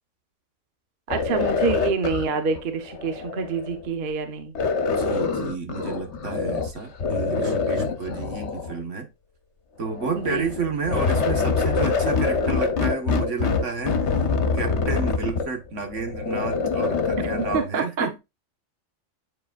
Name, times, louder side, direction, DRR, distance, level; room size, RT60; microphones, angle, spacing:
sound 1, 1.1-3.9 4.5-6.7 7.0-8.8 9.8-17.6, left 4 dB, 65° left, 1.2 m, -25 dB
voice 1, 1.1-4.5 10.2-10.5 17.4-18.2, right 5 dB, 50° right, 1.0 m, -27 dB
voice 2, 4.9-9.1 9.8-14.1 14.5-18.2, right 4 dB, 70° right, 1.8 m, -31 dB
8.6 x 4.9 x 2.5 m
omnidirectional pair, 1.3 m